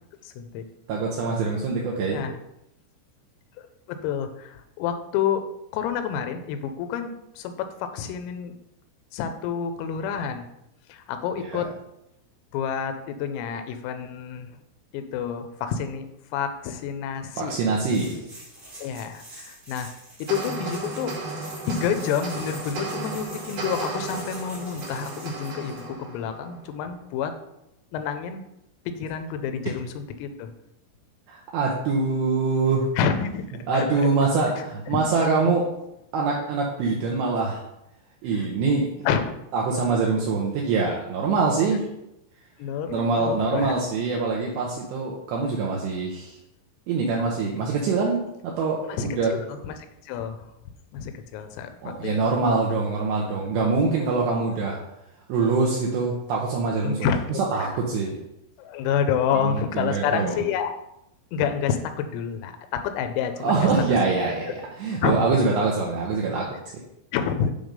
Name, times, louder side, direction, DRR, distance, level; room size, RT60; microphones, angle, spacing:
voice 1, 0.2-0.6 2.1-2.4 3.6-5.5 5.7-8.5 9.1-10.4 10.9-11.7 12.5-14.5 14.9-16.1 16.3-17.6 18.8-19.9 20.2-21.1 21.7-27.3 27.9-28.4 28.9-30.5 33.0-33.4 33.7-33.9 34.6-34.7 34.9-35.0 35.4-35.5 38.4-38.5 39.1-39.2 42.6-43.8 48.9-49.4 49.6-50.4 50.9-52.2 56.8-57.2 57.6-57.7 58.6-60.7 61.3-63.7 65.0-65.4 67.1-67.5, left 7 dB, 85° left, 8 dB, 3.3 m, -28 dB
voice 2, 0.9-2.3 11.4-11.6 17.4-18.1 31.3-32.9 33.7-35.7 36.1-37.6 38.2-39.1 39.5-41.9 42.9-46.4 46.9-49.3 51.8-54.8 55.3-57.1 57.5-58.2 59.4-60.4 63.4-66.5, right 4 dB, 80° right, -2 dB, 2.6 m, -24 dB
sound 1, 17.7-25.8, right 1 dB, 35° right, 1.2 m, -45 dB
sound 2, 20.3-26.9, right 3 dB, 50° right, 3.0 m, -34 dB
8.8 x 3.5 x 5.2 m, 0.84 s
omnidirectional pair, 5.9 m